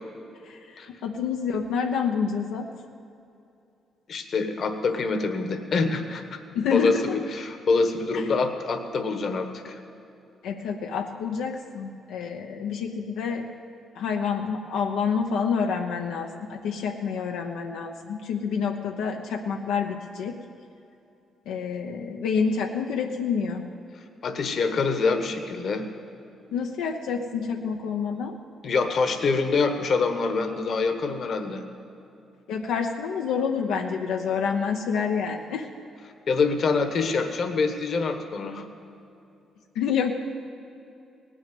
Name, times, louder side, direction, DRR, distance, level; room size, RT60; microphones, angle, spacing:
voice 1, 0.4-2.7 6.5-7.2 8.1-8.3 10.4-13.5 13.9-20.4 21.5-23.7 26.5-28.4 32.5-35.7 39.7-40.1, left 6 dB, 90° left, 1 dB, 0.8 m, -28 dB
voice 2, 4.1-6.4 6.7-9.8 24.2-25.8 28.6-31.6 36.3-38.7, left 4 dB, 55° left, 7 dB, 1.3 m, -25 dB
18.0 x 6.4 x 9.2 m, 2.7 s
cardioid pair, 90°, 0 cm